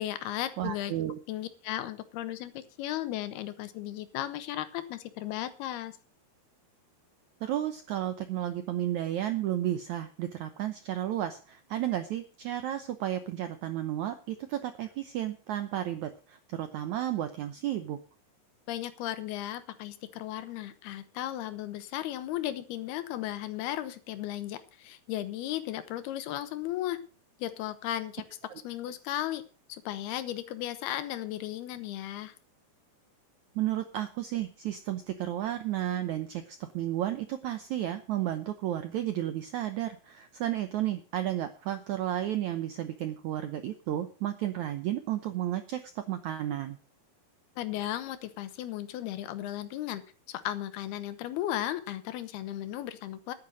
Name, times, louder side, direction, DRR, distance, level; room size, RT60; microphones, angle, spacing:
voice 1, 0.0-0.9 1.3-6.0 18.7-27.0 27.4-28.2 28.6-29.4 29.7-32.3 47.6-50.0 50.3-53.3, left 13 dB, 80° left, 13 dB, 3.0 m, -35 dB
voice 2, 0.6-1.2 7.4-18.0 28.5-28.6 33.5-46.8, right 12 dB, 80° right, 9 dB, 1.7 m, -32 dB
11.0 x 9.8 x 6.3 m, 0.36 s
omnidirectional pair, 4.5 m